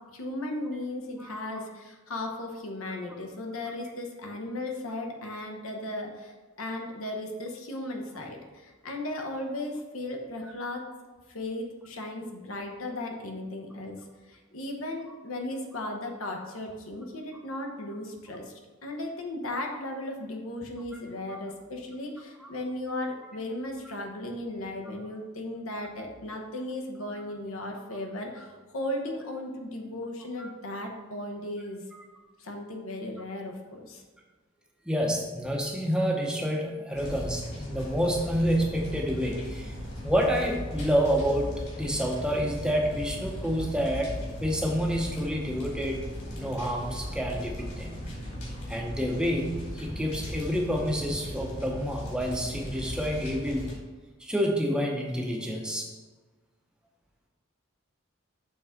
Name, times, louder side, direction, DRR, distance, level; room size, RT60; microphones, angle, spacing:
voice 1, 0.1-10.8 11.3-14.0 14.3-18.5 18.8-31.8 32.4-34.0, left 1 dB, 80° left, 2 dB, 1.1 m, -36 dB
voice 2, 34.9-39.7 40.0-41.5 41.8-44.1 44.4-46.0 46.3-48.0 48.7-53.7 54.2-55.9, equal, 5° right, 0 dB, 0.7 m, -28 dB
sound 1, 36.9-53.7, equal, 50° left, 2.3 m, -38 dB
6.9 x 3.7 x 5.6 m, 1.3 s
head